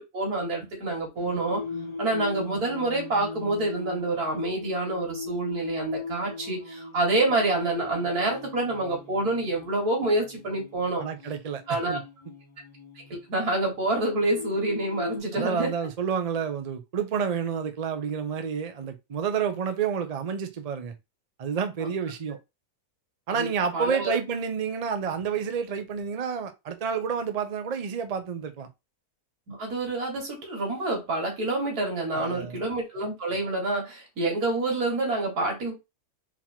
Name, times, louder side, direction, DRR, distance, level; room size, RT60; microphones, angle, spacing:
voice 1, 0.1-1.6 2.0-11.0 11.7-12.0 13.1-15.7 23.4-23.5 23.7-24.1 29.5-35.7, right 2 dB, 90° right, 2.2 m, -27 dB
Singing, 1.2-15.2, left 3 dB, 30° left, 0.6 m, -39 dB
voice 2, 11.0-11.6 11.9-12.0 15.3-20.9 21.4-22.4 23.3-28.7 32.1-32.6, right 6 dB, 40° right, 0.5 m, -29 dB
4.2 x 2.9 x 4.3 m
omnidirectional pair, 1.6 m